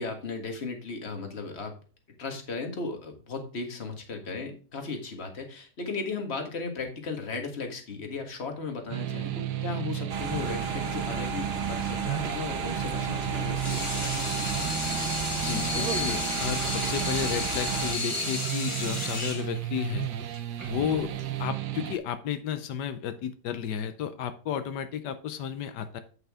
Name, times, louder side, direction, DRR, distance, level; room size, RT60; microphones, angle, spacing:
voice 1, 0.0-1.8 2.2-14.8, left 4 dB, 40° left, 4 dB, 1.8 m, -36 dB
sound 1, 8.9-22.0, right 12 dB, 80° right, 1.3 m, -33 dB
sound 2, 10.1-17.9, right 4 dB, 45° right, 1.0 m, -34 dB
Water tap faucet / Sink (filling or washing), 13.4-21.4, left 2 dB, 20° left, 1.3 m, -33 dB
voice 2, 15.3-20.1 20.7-21.1 21.4-26.0, left 9 dB, 90° left, 10 dB, 1.4 m, -32 dB
8.1 x 7.8 x 3.6 m, 0.37 s
omnidirectional pair, 1.8 m